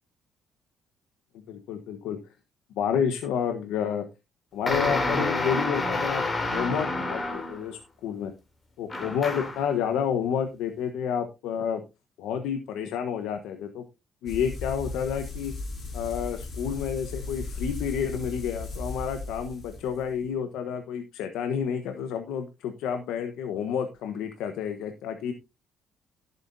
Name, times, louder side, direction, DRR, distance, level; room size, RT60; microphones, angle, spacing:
voice 1, 1.5-2.2 2.7-4.1 4.5-6.2 6.5-8.3 8.8-11.8 12.2-13.8 14.2-15.5 15.9-25.3, left 8 dB, 85° left, 7 dB, 1.1 m, -30 dB
sound 1, 4.7-7.7 8.9-9.7, left 2 dB, 25° left, 3.0 m, -28 dB
sound 2, 14.3-20.3, left 3 dB, 45° left, 6.3 m, -36 dB
14.5 x 8.1 x 2.7 m, 0.25 s
cardioid pair, 105°, 0 cm